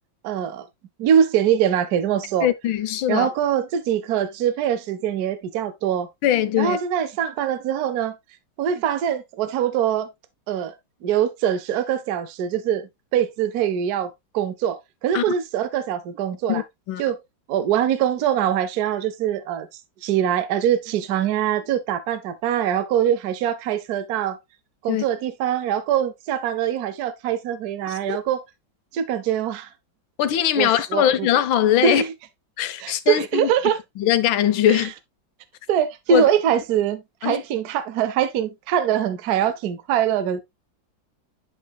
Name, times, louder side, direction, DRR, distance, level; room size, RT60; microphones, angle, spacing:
voice 1, 0.2-0.7 1.0-2.5 3.1-6.1 6.6-8.2 8.6-10.1 10.5-10.7 11.0-16.6 17.0-17.2 17.5-19.7 20.0-24.4 24.8-28.4 28.9-29.7 30.6-31.3 31.8-32.1 32.8-33.8 34.7-34.8 35.7-40.4, right 9 dB, 65° right, 1.1 m, -23 dB
voice 2, 2.4-3.3 6.2-6.8 15.1-15.2 16.5-17.0 24.9-25.0 27.9-28.2 30.2-32.0 32.6-33.5 34.0-34.9 36.1-36.2 37.2-37.4, left 11 dB, 85° left, 1.5 m, -21 dB
9.4 x 5.4 x 2.3 m
omnidirectional pair, 2.1 m